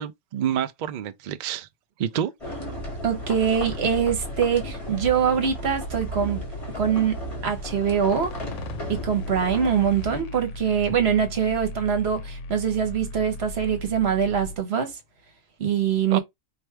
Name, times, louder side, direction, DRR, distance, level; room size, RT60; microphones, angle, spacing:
voice 1, 0.0-1.7 2.0-2.7 16.1-16.2, right 9 dB, 85° right, 0.4 m, -29 dB
sound 1, 2.4-10.2, right 1 dB, 25° left, 1.8 m, -35 dB
sound 2, 2.8-14.6, left 2 dB, 70° left, 1.0 m, -37 dB
voice 2, 3.0-6.4 6.7-8.3 8.9-14.9 15.6-16.2, right 7 dB, 55° right, 1.2 m, -23 dB
3.2 x 2.6 x 4.5 m
omnidirectional pair, 1.4 m